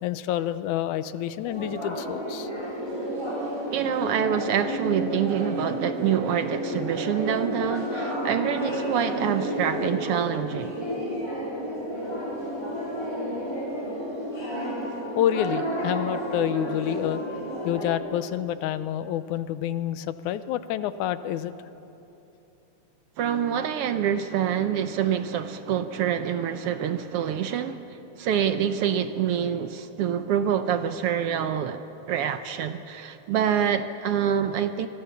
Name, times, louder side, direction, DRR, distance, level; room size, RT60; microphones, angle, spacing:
voice 1, 0.0-2.5 15.2-17.2 17.6-21.5, left 11 dB, 80° left, 2.2 m, -28 dB
sound 1, 1.4-17.9, equal, 10° left, 5.9 m, -31 dB
voice 2, 3.7-10.7 23.2-34.9, right 9 dB, 75° right, 1.4 m, -26 dB
27.0 x 22.0 x 7.1 m
omnidirectional pair, 3.5 m